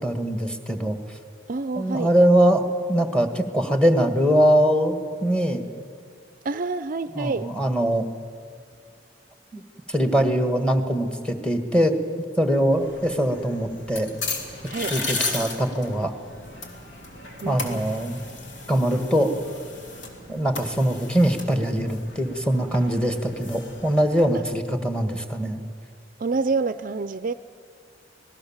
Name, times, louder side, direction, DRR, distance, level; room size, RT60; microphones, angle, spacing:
voice 1, 0.0-1.0 1.8-5.6 7.1-8.1 9.5-9.6 9.9-11.9 12.4-14.1 14.9-16.1 17.4-18.2 18.7-19.4 20.3-25.6, equal, 5° left, 7 dB, 1.6 m, -22 dB
voice 2, 1.5-2.1 6.4-7.5 14.7-14.9 17.4-17.8 26.2-27.3, right 4 dB, 45° right, 13 dB, 0.5 m, -27 dB
sound 1, 12.7-24.3, left 3 dB, 65° left, 2.9 m, -36 dB
26.0 x 18.5 x 7.3 m, 2.1 s
head